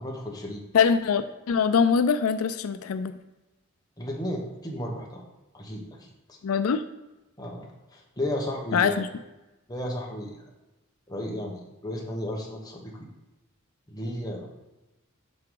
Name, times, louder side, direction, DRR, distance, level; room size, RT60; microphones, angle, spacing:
voice 1, 0.0-0.6 4.0-5.2 5.5-6.4 7.4-9.0 9.7-10.4 11.1-12.9 13.9-14.5, left 1 dB, 20° left, -1 dB, 1.0 m, -34 dB
voice 2, 0.7-3.2 6.4-6.8 8.7-9.1, left 6 dB, 85° left, 11 dB, 0.4 m, -23 dB
7.6 x 4.8 x 3.8 m, 1.0 s
head